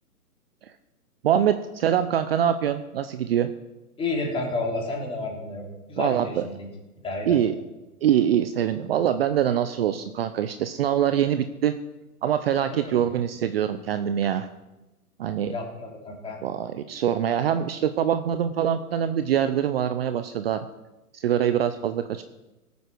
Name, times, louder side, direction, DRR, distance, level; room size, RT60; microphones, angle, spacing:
voice 1, 1.2-3.5 6.0-6.5 7.3-7.5 8.0-11.7 12.2-14.5 15.2-15.5 16.4-20.6 21.1-22.2, right 9 dB, 40° right, 10 dB, 0.7 m, -24 dB
voice 2, 4.0-6.7 7.0-7.4 12.7-13.1 15.5-16.4, left 2 dB, 10° left, -1 dB, 3.2 m, -31 dB
18.0 x 8.4 x 6.0 m, 1.1 s
hypercardioid pair, 130°, 46 cm